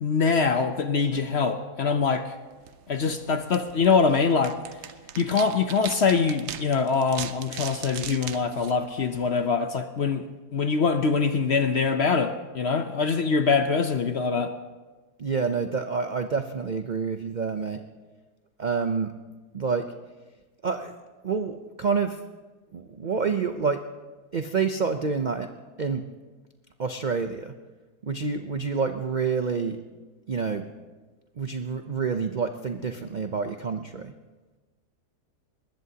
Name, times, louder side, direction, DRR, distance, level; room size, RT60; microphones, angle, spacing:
voice 1, 0.0-2.4 2.9-4.6 5.2-14.6, left 5 dB, 55° left, 8 dB, 0.7 m, -24 dB
sound 1, 2.5-9.5, right 9 dB, 60° right, 0.8 m, -40 dB
voice 2, 15.2-17.8 18.6-19.1 19.5-19.9 20.6-20.9 21.2-22.2 22.7-23.8 24.3-25.5 25.8-26.0 26.8-27.5 28.0-29.8 30.3-30.7 31.4-34.1, right 5 dB, 75° right, 7 dB, 0.4 m, -28 dB
21.5 x 20.0 x 2.8 m, 1.3 s
omnidirectional pair, 1.8 m